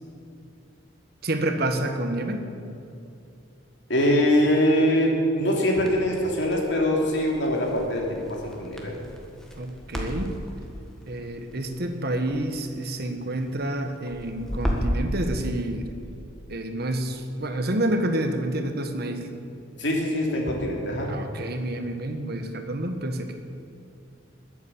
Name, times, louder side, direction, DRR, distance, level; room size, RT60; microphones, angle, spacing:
voice 1, 1.2-2.5 9.6-10.3 11.1-15.9 16.5-19.3 21.1-23.3, right 1 dB, 50° right, 6 dB, 1.3 m, -28 dB
voice 2, 3.9-9.0 19.8-21.1, equal, 60° left, -1 dB, 3.1 m, -23 dB
Crackle, 5.7-15.1, equal, 5° left, 1.7 m, -35 dB
21.0 x 8.4 x 7.2 m, 2.7 s
head